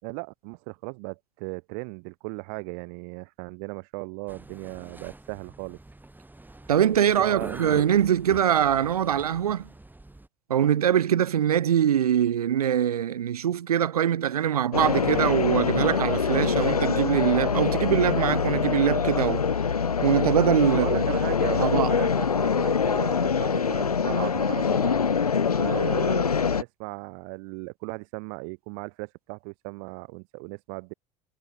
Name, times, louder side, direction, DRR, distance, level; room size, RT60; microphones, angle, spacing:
voice 1, 0.0-5.8 7.2-7.6 20.7-25.0 25.6-30.9, right 40 dB or more, 65° right, 6.8 m, -36 dB
sound 1, 4.3-10.3, right 2 dB, 10° right, 3.8 m, -45 dB
voice 2, 6.7-9.7 10.5-19.4 20.0-21.0 21.6-21.9, right 9 dB, 85° right, 0.6 m, -23 dB
sound 2, 14.7-26.6, left 6 dB, 90° left, 1.2 m, -24 dB
figure-of-eight pair, 65°, 19 cm